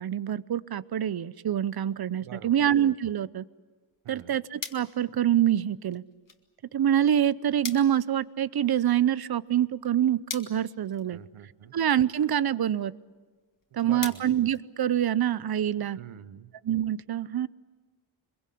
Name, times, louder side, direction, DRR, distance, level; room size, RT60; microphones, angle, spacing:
voice 1, 0.0-3.4 4.1-6.0 6.7-11.2 11.7-12.9 13.7-16.0 16.6-17.5, right 10 dB, 50° right, 19 dB, 0.7 m, -26 dB
voice 2, 2.2-2.7 4.0-4.4 11.1-11.7 13.8-14.2 15.9-16.5, right 9 dB, 80° right, 13 dB, 1.0 m, -45 dB
sound 1, 3.9-15.3, left 4 dB, 40° left, 2.1 m, -46 dB
24.5 x 22.5 x 8.5 m, 1.4 s
wide cardioid pair, 110°, 49 cm